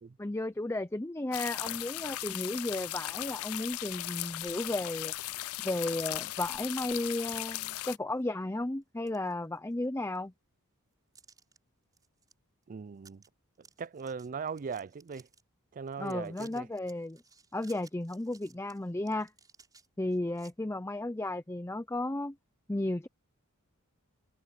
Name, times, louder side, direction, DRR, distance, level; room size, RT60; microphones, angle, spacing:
voice 1, 0.2-5.1 5.6-10.3 16.0-17.2 17.5-19.3 20.0-22.3 22.7-23.1, left 2 dB, 10° left, 0.6 m, -34 dB
sound 1, 1.3-8.0, left 17 dB, 70° left, 0.4 m, -37 dB
sound 2, 5.7-6.2 6.7-6.8 7.5-7.6 8.0-8.4 8.8-9.9 10.2-10.3 11.2-11.6 11.9-12.3 12.6-12.7 13.0-13.3 13.6-15.4 15.9-20.5, right 4 dB, 15° right, 4.5 m, -60 dB
voice 2, 12.7-13.2 13.8-15.3 15.7-16.7, right 5 dB, 35° right, 0.4 m, -39 dB
head